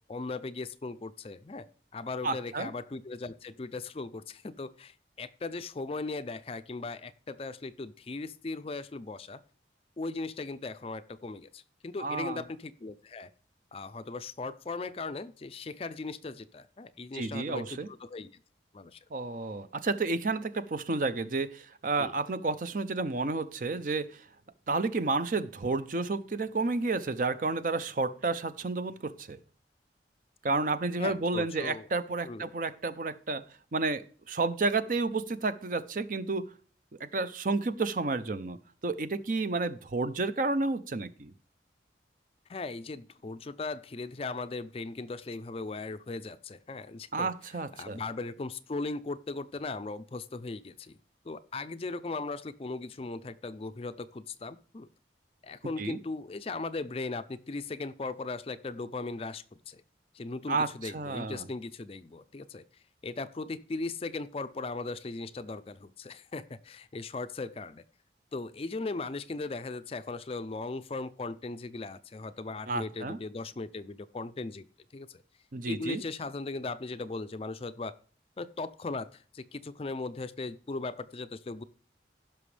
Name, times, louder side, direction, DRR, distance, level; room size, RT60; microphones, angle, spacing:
voice 1, 0.1-1.7 1.9-9.4 10.0-13.3 13.7-18.4 18.7-19.0 22.0-22.1 31.0-31.9 32.3-32.5 42.5-47.3 47.8-51.0 51.2-54.9 55.4-59.8 60.1-62.6 63.0-67.8 68.3-74.7 74.9-75.2 75.7-77.9 78.4-81.6, left 3 dB, 30° left, 13 dB, 0.4 m, -38 dB
voice 2, 2.2-2.7 12.0-12.4 17.1-17.9 19.1-24.2 24.7-29.4 30.4-33.4 33.7-36.5 37.1-38.6 38.8-41.3 47.1-48.0 55.8-56.0 60.5-61.5 72.7-73.2 75.5-76.0, right 3 dB, 45° right, 13 dB, 0.5 m, -31 dB
16.0 x 6.0 x 3.3 m, 0.42 s
head